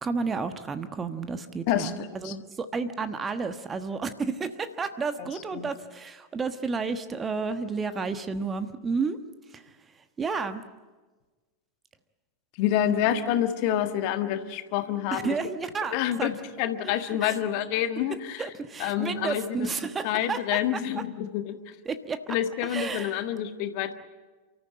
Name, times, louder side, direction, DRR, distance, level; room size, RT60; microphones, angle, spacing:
voice 1, 0.0-9.2 9.5-9.6 10.2-10.6 15.1-16.3 16.8-16.9 17.2-17.3 18.4-20.6 21.9-22.3 22.7-23.1, right 4 dB, 20° right, 10 dB, 1.3 m, -31 dB
voice 2, 1.7-2.3 5.2-5.7 12.6-15.4 15.9-18.4 18.8-19.7 20.0-21.7 22.3-23.9, left 11 dB, 45° left, 8 dB, 1.5 m, -28 dB
30.0 x 14.0 x 8.6 m, 1.3 s
figure-of-eight pair, 90°, 0 cm